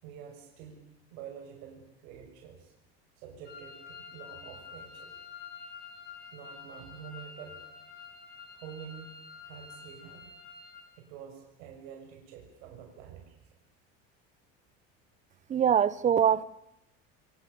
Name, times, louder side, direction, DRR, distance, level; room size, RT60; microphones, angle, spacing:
voice 1, 0.0-0.8 1.1-2.7 3.2-5.1 6.3-7.6 8.5-10.3 11.0-13.3 16.2-16.3, right 8 dB, 90° right, 2 dB, 7.0 m, -47 dB
sound 1, 3.5-10.8, left 5 dB, 35° left, 7.3 m, -48 dB
voice 2, 15.5-16.4, right 8 dB, 25° right, 18 dB, 0.9 m, -23 dB
28.5 x 28.0 x 7.0 m, 0.86 s
cardioid pair, 160°, 30 cm